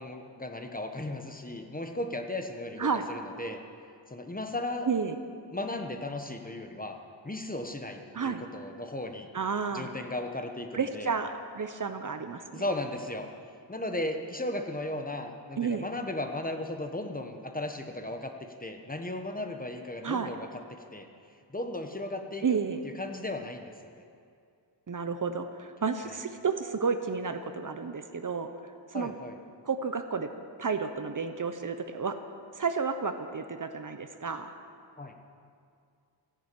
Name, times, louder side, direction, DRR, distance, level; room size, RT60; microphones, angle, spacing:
voice 1, 0.0-3.6 4.1-4.9 5.5-9.3 9.7-11.1 12.5-13.3 13.7-18.3 18.6-20.6 20.9-21.1 21.5-24.0 26.0-26.2 28.9-29.4 35.0-35.1, left 1 dB, 20° left, 5 dB, 1.1 m, -36 dB
voice 2, 4.8-5.2 8.1-8.4 9.3-9.9 10.7-12.6 15.6-15.9 20.0-20.3 22.4-22.8 24.9-28.5 28.9-29.1 29.7-30.3 30.6-32.2 32.5-34.5, right 5 dB, 45° right, 8 dB, 0.9 m, -31 dB
15.0 x 11.0 x 8.4 m, 2.3 s
wide cardioid pair, 140°, 44 cm